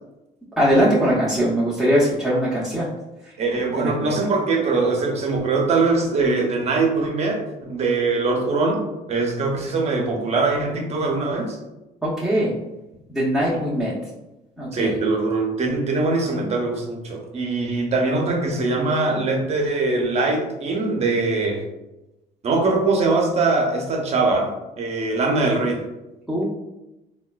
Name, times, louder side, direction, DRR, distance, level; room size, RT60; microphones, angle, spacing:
voice 1, 0.6-2.9 3.2-3.3 3.8-4.1 12.0-12.5 13.1-13.9 14.6-15.0 26.3-26.4, equal, ahead, -9 dB, 0.6 m, -21 dB
voice 2, 3.4-8.8 9.1-11.6 14.7-21.6 22.4-25.8, right 3 dB, 40° right, 1 dB, 0.7 m, -22 dB
3.6 x 2.2 x 2.3 m, 0.99 s
cardioid pair, 110°, 17 cm